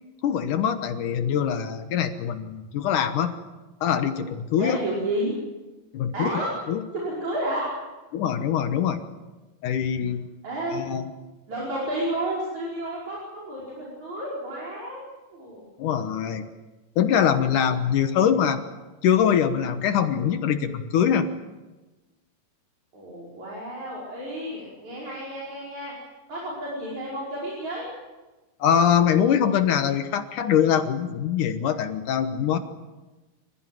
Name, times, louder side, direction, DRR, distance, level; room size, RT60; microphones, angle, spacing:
voice 1, 0.2-3.3 3.8-4.8 5.9-6.3 6.7-6.8 8.1-9.0 9.6-10.3 10.8-11.1 15.8-16.5 17.0-18.6 19.0-21.3 28.6-32.6, left 8 dB, 70° left, 9 dB, 2.5 m, -23 dB
voice 2, 4.6-5.3 6.1-6.5 6.9-7.7 10.4-10.9 11.5-15.1 15.3-15.6 22.9-25.9 26.3-27.9, right 1 dB, 50° right, -5 dB, 6.5 m, -31 dB
27.5 x 16.0 x 9.2 m, 1.2 s
omnidirectional pair, 4.2 m